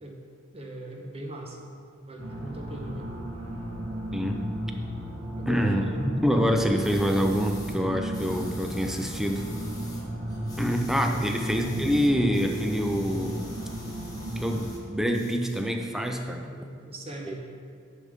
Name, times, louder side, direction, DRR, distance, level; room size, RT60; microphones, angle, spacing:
voice 1, 0.5-1.7 2.0-3.1 5.4-6.0 11.1-11.4 16.4-17.4, right 1 dB, 30° right, 1 dB, 0.9 m, -40 dB
sound 1, 2.2-14.7, equal, 75° right, 1.3 m, -35 dB
voice 2, 4.1-4.4 5.5-5.8 6.2-9.5 10.6-13.5 14.4-16.5 17.3-17.4, equal, ahead, 3 dB, 0.4 m, -26 dB
sound 2, 6.8-7.8 8.1-10.0 10.3-14.8 15.1-16.1, left 2 dB, 20° left, 1.2 m, -48 dB
10.0 x 3.6 x 5.2 m, 2.2 s
head